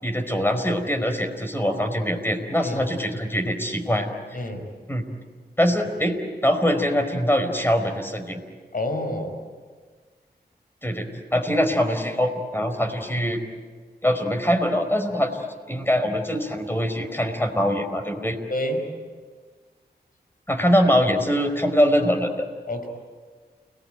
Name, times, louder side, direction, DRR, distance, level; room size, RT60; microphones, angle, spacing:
voice 1, 0.0-4.1 4.9-5.0 5.6-8.4 10.8-13.4 14.0-18.4 20.5-22.5, equal, 10° left, 6 dB, 4.6 m, -23 dB
voice 2, 4.3-4.7 8.7-9.4 18.5-18.9 22.7-22.9, left 1 dB, 55° left, 5 dB, 5.4 m, -28 dB
30.0 x 19.5 x 9.2 m, 1.5 s
cardioid pair, 55°, 18 cm